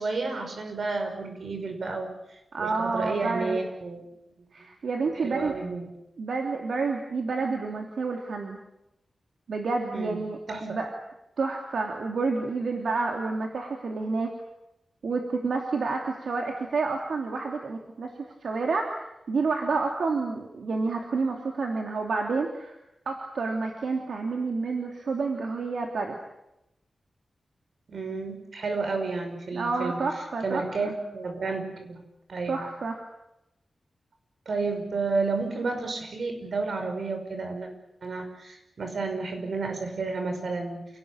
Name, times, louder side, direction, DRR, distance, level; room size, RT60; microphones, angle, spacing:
voice 1, 0.0-2.1 2.6-4.1 5.2-5.9 9.9-10.2 10.5-10.8 27.9-30.0 30.4-32.0 32.3-32.6 34.5-37.7 38.0-40.9, right 3 dB, 60° right, 5 dB, 5.6 m, -31 dB
voice 2, 2.5-3.6 4.5-5.5 6.2-8.6 9.5-10.9 11.4-14.3 15.0-18.1 18.4-22.8 23.0-26.2 29.5-30.9 32.5-33.0, right 4 dB, 80° right, 2 dB, 3.0 m, -29 dB
28.5 x 18.5 x 8.9 m, 0.90 s
wide cardioid pair, 165°, 0 cm